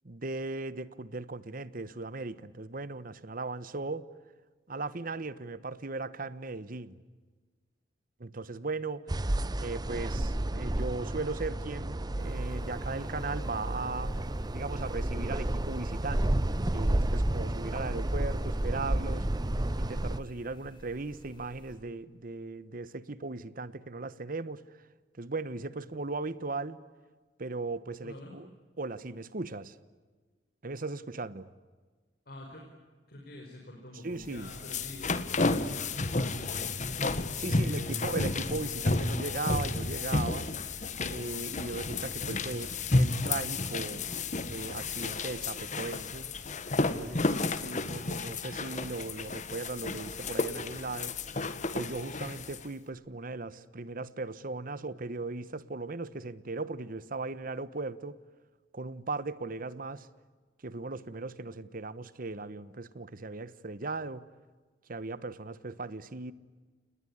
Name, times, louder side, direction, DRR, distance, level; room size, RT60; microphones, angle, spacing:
voice 1, 0.0-4.0 4.7-7.0 8.2-9.1 9.6-14.1 14.5-16.4 16.7-19.3 19.8-24.6 25.2-26.8 27.4-28.5 28.8-29.7 30.6-31.5 34.0-34.5 37.4-40.5 41.1-44.1 44.4-46.3 46.9-51.2 51.7-58.2 58.7-60.1 60.6-64.2 64.9-66.3, right 3 dB, 55° right, 1.1 m, -37 dB
sound 1, 9.1-20.2, right 1 dB, 25° right, 0.7 m, -31 dB
sound 2, 12.2-21.7, equal, 30° left, 6.7 m, -51 dB
voice 2, 28.0-28.3 32.2-32.6 33.1-37.1 37.5-38.0 46.9-47.7, left 1 dB, 60° left, 5.1 m, -46 dB
sound 3, 34.2-52.6, left 3 dB, 45° left, 1.6 m, -32 dB
29.5 x 20.0 x 10.0 m
head